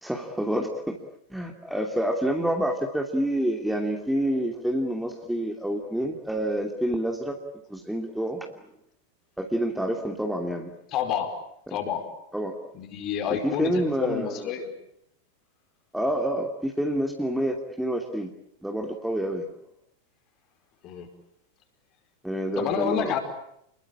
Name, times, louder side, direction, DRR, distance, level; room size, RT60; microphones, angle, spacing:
voice 1, 0.0-1.0 1.3-7.4 7.7-8.5 9.4-10.7 11.7-11.8 12.3-12.5 13.4-14.5 15.9-18.3 18.6-19.4 22.2-23.2, right 1 dB, ahead, 3 dB, 2.8 m, -28 dB
voice 2, 10.9-11.3 11.7-12.0 12.7-14.7 20.8-21.1 22.6-23.2, left 8 dB, 35° left, 6 dB, 4.9 m, -29 dB
29.5 x 21.5 x 8.7 m, 0.77 s
figure-of-eight pair, 90°, 0 cm